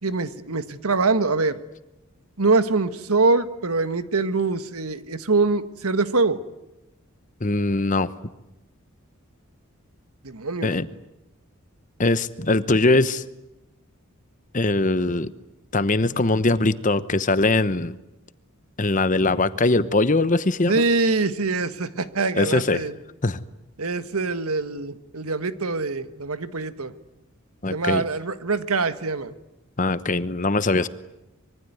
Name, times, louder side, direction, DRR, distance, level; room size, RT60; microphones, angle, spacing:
voice 1, 0.0-1.6 2.4-6.4 10.2-10.7 20.7-22.9 23.8-26.9 27.7-29.3, right 3 dB, 90° right, 11 dB, 1.6 m, -24 dB
voice 2, 7.4-8.1 10.6-10.9 12.0-13.2 14.5-15.3 15.7-18.0 18.8-20.8 22.3-22.8 23.2-23.4 27.6-28.0 29.8-30.9, left 2 dB, 35° left, 14 dB, 1.0 m, -21 dB
25.5 x 23.5 x 9.4 m, 0.94 s
head